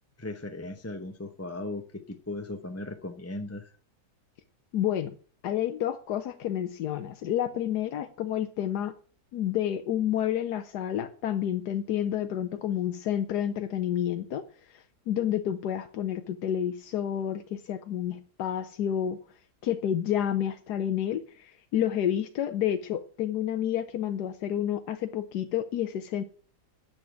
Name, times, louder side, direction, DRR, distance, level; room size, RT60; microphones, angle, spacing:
voice 1, 0.2-3.7, left 2 dB, 15° left, 6 dB, 0.7 m, -37 dB
voice 2, 4.7-5.1 5.4-8.9 9.3-14.4 14.7-19.2 19.6-26.2, left 10 dB, 90° left, 8 dB, 1.4 m, -29 dB
10.5 x 7.1 x 8.8 m, 0.41 s
omnidirectional pair, 1.7 m